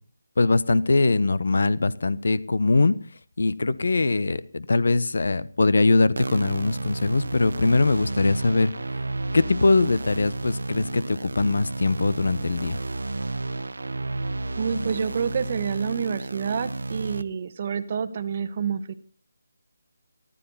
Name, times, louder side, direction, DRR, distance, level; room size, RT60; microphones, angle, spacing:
voice 1, 0.4-2.9 3.4-8.7 9.3-12.8, left 3 dB, 70° left, 17 dB, 1.2 m, -22 dB
sound 1, 6.2-17.2, right 2 dB, 80° right, 1.0 m, -32 dB
voice 2, 14.6-18.9, right 6 dB, 35° right, 10 dB, 1.2 m, -28 dB
14.5 x 13.0 x 5.6 m, 0.37 s
figure-of-eight pair, 165°, 0 cm